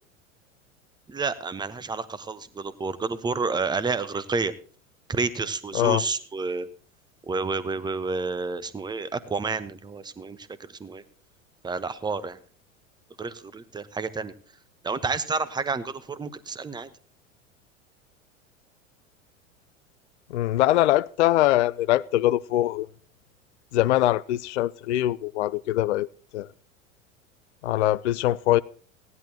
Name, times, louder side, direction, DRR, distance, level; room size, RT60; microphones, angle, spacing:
voice 1, 1.1-4.5 5.1-6.7 7.3-11.0 11.6-12.4 13.2-14.3 14.8-16.9, right 4 dB, 10° right, 1.0 m, -30 dB
voice 2, 20.3-22.9 23.7-26.1 26.3-26.5 27.6-28.6, left 14 dB, 60° left, 0.5 m, -22 dB
18.0 x 11.0 x 2.8 m
figure-of-eight pair, 80°, 39 cm